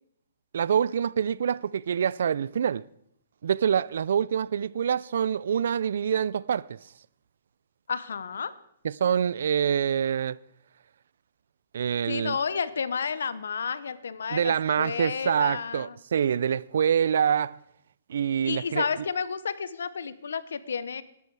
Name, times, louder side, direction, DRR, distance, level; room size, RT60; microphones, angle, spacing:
voice 1, 0.5-2.8 3.4-6.8 8.8-10.4 11.7-12.4 14.3-17.6 18.1-18.9, right 8 dB, 70° right, 0.4 m, -26 dB
voice 2, 7.9-8.5 12.1-16.0 18.4-21.0, left 6 dB, 85° left, 0.9 m, -31 dB
12.5 x 12.0 x 4.7 m
hypercardioid pair, 145°, 0 cm